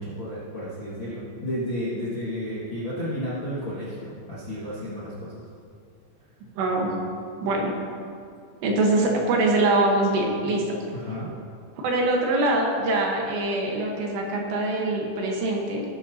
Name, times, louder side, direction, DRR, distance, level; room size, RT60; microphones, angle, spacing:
voice 1, 0.0-5.4 10.9-11.4, equal, 45° left, -10 dB, 1.5 m, -32 dB
voice 2, 6.6-7.0 7.4-7.7 8.6-10.6 11.8-15.8, right 2 dB, 75° right, -1 dB, 3.3 m, -23 dB
18.5 x 8.5 x 2.8 m, 2.4 s
omnidirectional pair, 5.3 m